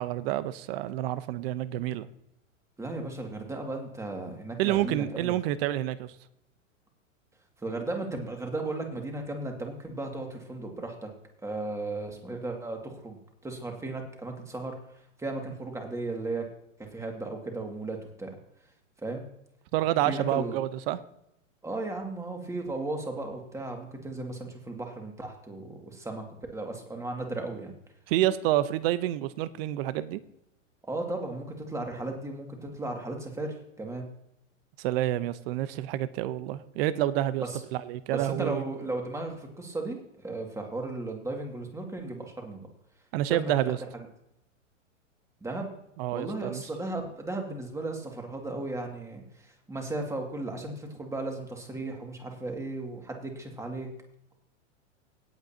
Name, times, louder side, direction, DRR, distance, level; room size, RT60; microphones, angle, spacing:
voice 1, 0.0-2.1 4.6-6.1 19.7-21.0 28.1-30.2 34.8-37.4 37.7-38.6 43.1-43.8 46.0-46.6, right 13 dB, 50° right, 14 dB, 0.9 m, -28 dB
voice 2, 2.8-5.4 7.6-11.1 11.4-13.2 13.4-14.7 15.2-16.4 16.8-18.3 19.0-19.3 20.1-20.6 21.6-26.2 26.5-27.7 30.9-34.1 37.4-37.6 38.1-42.6 43.3-43.7 45.4-45.8 46.1-53.9, right 2 dB, 10° right, 2 dB, 2.2 m, -35 dB
18.0 x 8.2 x 2.9 m, 0.81 s
hypercardioid pair, 125°, 39 cm